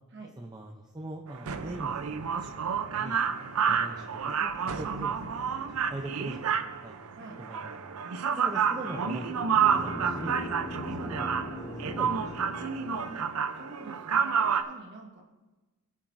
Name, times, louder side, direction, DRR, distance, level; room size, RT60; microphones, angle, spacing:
voice 1, 0.4-3.2 3.6-4.0 4.4-6.9 7.4-8.0 8.3-11.4 11.8-12.3, right 1 dB, 20° right, 1 dB, 0.6 m, -42 dB
sound 1, 1.3-14.6, right 7 dB, 75° right, 0.6 m, -29 dB
sound 2, 8.5-13.4, equal, 15° left, 0.9 m, -39 dB
voice 2, 10.8-11.1 12.9-13.2 13.5-15.2, right 2 dB, 50° right, 0 dB, 1.1 m, -47 dB
20.5 x 7.2 x 2.6 m, 1.2 s
head